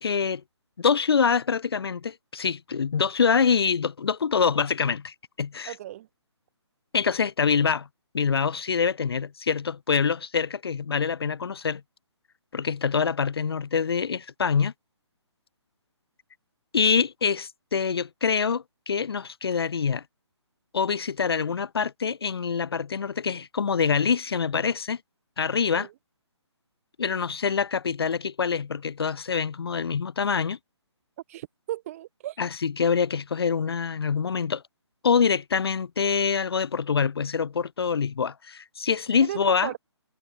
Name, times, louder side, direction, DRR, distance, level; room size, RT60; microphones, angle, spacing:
voice 1, 0.0-0.4 0.8-5.7 6.9-7.9 8.1-11.8 12.5-14.7 16.7-20.0 20.7-25.0 25.4-25.9 27.0-30.6 32.4-34.6 35.0-39.7, left 6 dB, 55° left, 0.7 m, -25 dB
voice 2, 5.7-6.1 25.7-25.9 31.3-32.4 39.2-39.8, right 14 dB, 30° right, 2.0 m, -35 dB
figure-of-eight pair, 140°, 15 cm